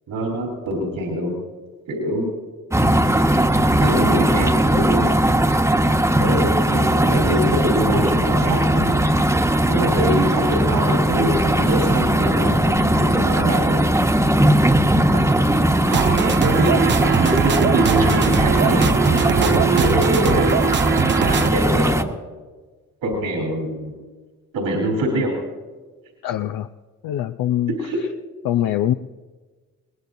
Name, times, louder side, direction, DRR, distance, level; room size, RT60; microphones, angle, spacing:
voice 1, 0.1-1.4 1.9-2.3 3.8-5.1 6.2-9.0 9.7-13.8 15.1-15.2 15.9-16.0 16.4-19.0 19.3-20.6 21.1-22.1 23.0-24.0 24.5-25.3 27.8-28.0, right 1 dB, 80° right, 0 dB, 3.6 m, -24 dB
sound 1, 2.7-22.0, right 1 dB, 10° right, 1.1 m, -19 dB
sound 2, 15.9-21.5, right 9 dB, 35° right, 0.4 m, -21 dB
voice 2, 26.2-26.7 27.0-27.7 28.4-28.9, left 12 dB, 75° left, 7 dB, 0.6 m, -22 dB
21.5 x 19.5 x 2.7 m, 1.3 s
supercardioid pair, 55°, 34 cm